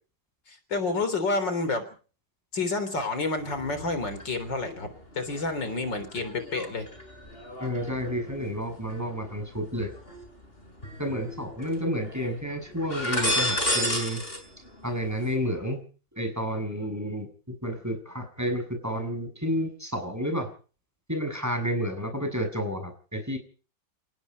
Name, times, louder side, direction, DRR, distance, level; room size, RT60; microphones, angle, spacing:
voice 1, 0.5-1.8 2.5-4.9 5.1-6.9, left 3 dB, 75° left, 10 dB, 4.3 m, -29 dB
sound 1, 3.4-4.2 4.6-10.2 10.8-11.7 12.0-12.3 12.7-14.4 14.7-15.3, left 1 dB, 30° left, 7.0 m, -33 dB
voice 2, 7.5-9.9 11.0-14.2 14.8-15.8 16.2-20.5 21.1-23.4, equal, 10° right, 5 dB, 7.2 m, -30 dB
28.0 x 18.5 x 5.4 m, 0.42 s
omnidirectional pair, 1.9 m